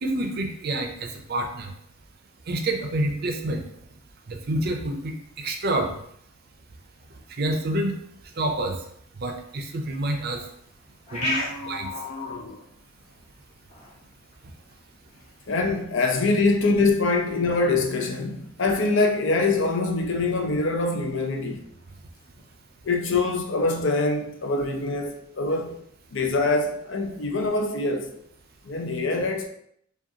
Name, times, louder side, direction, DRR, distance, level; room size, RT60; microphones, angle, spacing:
voice 1, 0.0-1.7 2.5-3.6 4.3-6.0 7.4-8.0 8.4-8.8 9.2-10.4 11.1-11.4 11.6-11.9, right 1 dB, 50° right, 0.5 m, -28 dB
sound 1, 10.4-24.5, left 1 dB, 35° left, 0.9 m, -41 dB
voice 2, 11.1-12.6 15.5-21.6 22.8-25.8 26.1-28.1 28.6-29.5, left 3 dB, 60° left, 0.6 m, -24 dB
4.9 x 2.4 x 2.8 m
head